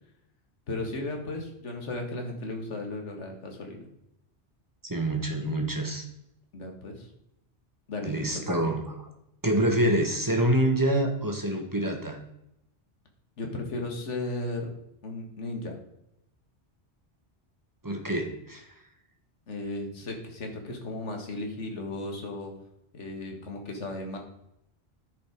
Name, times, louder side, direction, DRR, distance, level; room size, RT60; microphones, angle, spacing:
voice 1, 0.7-3.9 6.5-7.1 7.9-8.6 13.4-14.7 15.0-15.8 19.5-22.5 22.9-24.2, left 2 dB, 90° left, 3 dB, 1.9 m, -35 dB
voice 2, 4.8-6.0 8.0-9.0 9.4-12.2 17.8-18.7, right 1 dB, 20° right, 2 dB, 1.3 m, -26 dB
10.0 x 5.1 x 5.0 m, 0.82 s
omnidirectional pair, 1.2 m